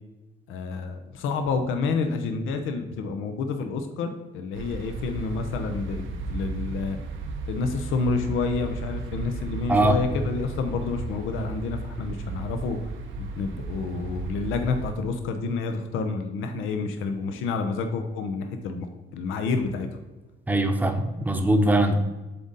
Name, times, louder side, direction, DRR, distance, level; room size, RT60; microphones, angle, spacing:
voice 1, 0.5-7.0 7.5-12.8 13.2-18.9 19.1-19.9, left 4 dB, 85° left, 6 dB, 0.7 m, -29 dB
sound 1, 4.5-14.9, right 4 dB, 75° right, 0.8 m, -35 dB
voice 2, 20.5-21.9, right 1 dB, 10° right, 5 dB, 0.8 m, -21 dB
7.8 x 3.7 x 4.0 m, 1.1 s
cardioid pair, 90°, 20 cm